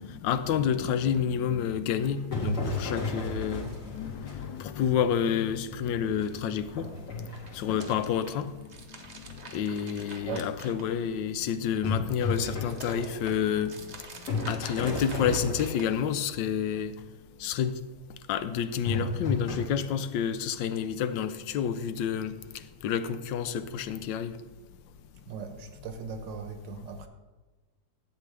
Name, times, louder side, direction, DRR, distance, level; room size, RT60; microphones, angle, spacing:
voice 1, 0.0-7.2 7.5-16.9 17.4-17.8 18.3-24.4 26.8-26.9, left 8 dB, 85° left, 1.3 m, -29 dB
sound 1, 2.0-4.7 5.3-5.4 5.9-8.2 11.8-13.9 14.3-16.0 18.9-19.6, left 2 dB, 60° left, 2.7 m, -33 dB
sound 2, 7.2-11.3 11.7-16.3, right 3 dB, 40° right, 0.6 m, -47 dB
voice 2, 25.3-27.1, right 6 dB, 75° right, 1.5 m, -38 dB
12.0 x 8.1 x 3.3 m
omnidirectional pair, 2.0 m